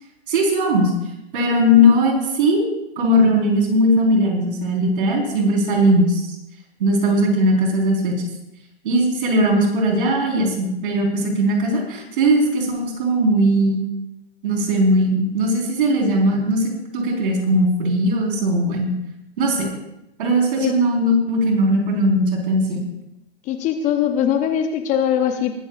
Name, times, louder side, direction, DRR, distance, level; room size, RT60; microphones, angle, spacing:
voice 1, 0.3-0.9 1.3-2.6 3.0-6.3 6.8-8.2 8.8-13.8 14.4-18.9 19.4-19.7 20.2-22.8, equal, 55° right, 0 dB, 4.5 m, -19 dB
voice 2, 23.5-25.5, left 9 dB, 25° left, 7 dB, 0.8 m, -21 dB
21.0 x 13.5 x 2.5 m, 0.86 s
figure-of-eight pair, 120°, 31 cm